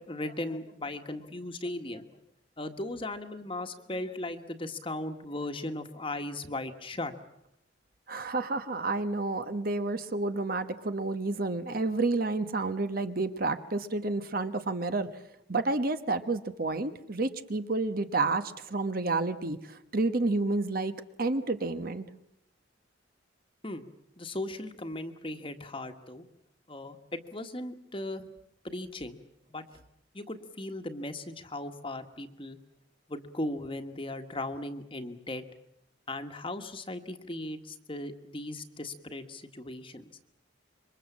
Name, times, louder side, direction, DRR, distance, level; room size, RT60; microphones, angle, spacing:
voice 1, 0.1-2.1 2.6-7.1 23.6-23.8 24.2-26.2 26.7-28.3 28.6-29.2 29.5-29.6 30.1-32.6 33.1-35.4 36.1-40.1, left 1 dB, 25° left, 7 dB, 1.6 m, -37 dB
voice 2, 8.1-15.2 15.5-20.9 21.2-22.0, right 3 dB, 50° right, 9 dB, 1.2 m, -30 dB
27.0 x 23.5 x 7.3 m, 0.80 s
head